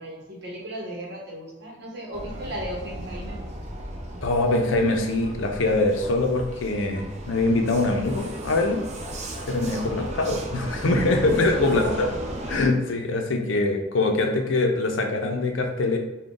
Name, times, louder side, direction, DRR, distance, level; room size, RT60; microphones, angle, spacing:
voice 1, 0.0-3.4 10.0-10.2 11.6-12.1, right 1 dB, 60° right, -1 dB, 0.9 m, -35 dB
Vehicle, 2.1-12.7, right 1 dB, 35° right, 0.5 m, -35 dB
voice 2, 4.2-8.8 9.5-12.1 12.5-16.0, left 2 dB, 80° left, 4 dB, 0.5 m, -23 dB
3.6 x 2.2 x 3.8 m, 1.0 s
head